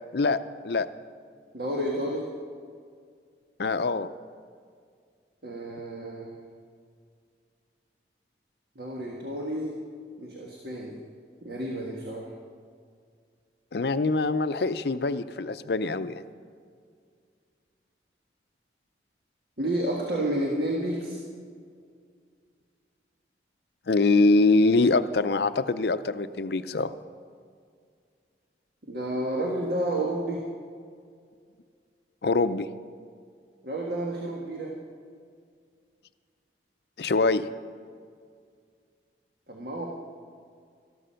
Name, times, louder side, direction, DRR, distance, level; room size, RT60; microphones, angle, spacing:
voice 1, 0.1-0.9 3.6-4.1 13.7-16.2 23.9-26.9 32.2-32.7 37.0-37.5, left 3 dB, 65° left, 13 dB, 0.5 m, -24 dB
voice 2, 1.5-2.3 5.4-6.3 8.7-9.7 10.2-11.0 11.4-12.3 19.6-21.2 28.9-30.4 33.6-34.7 39.5-39.9, right 1 dB, 60° right, -2 dB, 1.6 m, -30 dB
13.5 x 13.0 x 5.7 m, 2.1 s
head